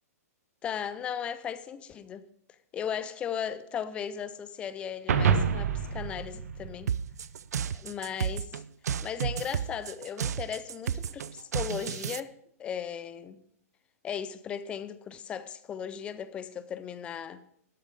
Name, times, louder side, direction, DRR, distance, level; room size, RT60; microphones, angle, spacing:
voice 1, 0.6-2.2 2.7-6.9 7.7-8.5 9.0-13.4 14.0-17.4, left 8 dB, 15° left, 0.5 m, -36 dB
sound 1, 5.1-7.6, right 6 dB, 70° right, 1.1 m, -28 dB
sound 2, 6.9-12.2, right 8 dB, 90° right, 0.5 m, -32 dB
12.5 x 7.1 x 4.9 m
hypercardioid pair, 165°, 9 cm